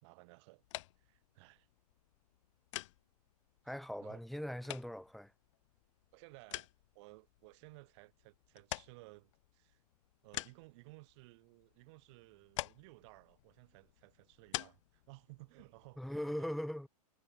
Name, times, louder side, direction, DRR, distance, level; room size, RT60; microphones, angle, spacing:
voice 1, 0.0-0.6 1.0-1.7 3.7-3.8 4.0-4.2 6.1-6.7 6.9-9.8 10.2-16.5, right 25 dB, 45° right, 3.6 m, -58 dB
sound 1, 0.6-16.3, left 18 dB, 50° left, 0.7 m, -49 dB
voice 2, 3.6-5.3 16.0-16.9, equal, ahead, 0.9 m, -40 dB
figure-of-eight pair, 110°, 21 cm